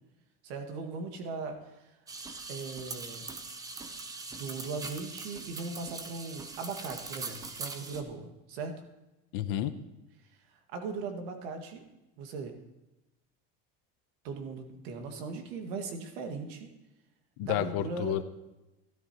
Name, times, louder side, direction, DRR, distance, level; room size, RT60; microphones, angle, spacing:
voice 1, 0.4-1.9 2.5-3.3 4.3-8.8 10.5-11.8 12.2-12.6 14.2-16.7 17.4-18.2, right 4 dB, 85° right, 4 dB, 2.0 m, -39 dB
sound 1, 2.1-8.0, right 3 dB, 10° right, 0.6 m, -42 dB
voice 2, 9.3-9.8 17.4-18.2, left 12 dB, 60° left, 11 dB, 0.8 m, -30 dB
14.0 x 12.5 x 3.0 m, 0.98 s
cardioid pair, 170°, 30 cm